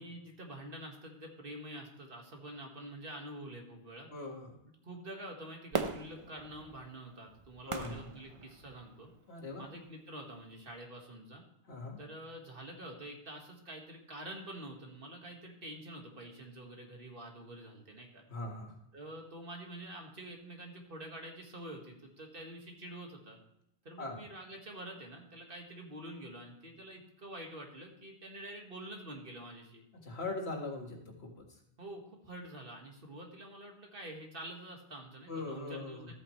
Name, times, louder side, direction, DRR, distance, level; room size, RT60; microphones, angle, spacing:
voice 1, 0.0-4.1 4.8-9.1 9.6-11.4 12.0-18.2 18.9-23.4 23.8-29.8 31.8-36.1, right 1 dB, 60° right, 1 dB, 2.0 m, -47 dB
voice 2, 4.1-4.6 7.7-8.1 9.3-9.6 11.7-12.0 18.3-18.7 24.0-24.2 30.0-31.4 35.3-36.1, left 3 dB, 85° left, 1 dB, 2.1 m, -41 dB
Fireworks, 5.7-9.1 9.6-9.7, right 4 dB, 35° right, 0.8 m, -39 dB
13.5 x 8.7 x 3.2 m, 0.81 s
omnidirectional pair, 1.0 m